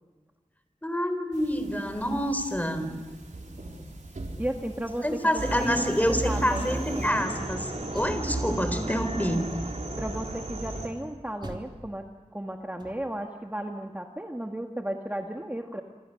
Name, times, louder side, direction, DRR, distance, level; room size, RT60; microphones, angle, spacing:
voice 1, 0.8-2.9 5.0-7.6 7.9-9.5, equal, 10° left, 8 dB, 4.0 m, -27 dB
sound 1, 1.3-7.1, right 2 dB, 80° right, 4.7 m, -45 dB
voice 2, 4.4-7.3 10.0-12.0 12.3-15.8, right 1 dB, 15° right, 2 dB, 1.9 m, -34 dB
sound 2, 5.4-10.9, right 2 dB, 60° right, 5.5 m, -33 dB
Door, 7.7-8.9 9.5-10.1 11.4-13.3, right 1 dB, 40° right, 3.4 m, -45 dB
27.5 x 26.5 x 6.6 m, 1.4 s
wide cardioid pair, 65°, 13 cm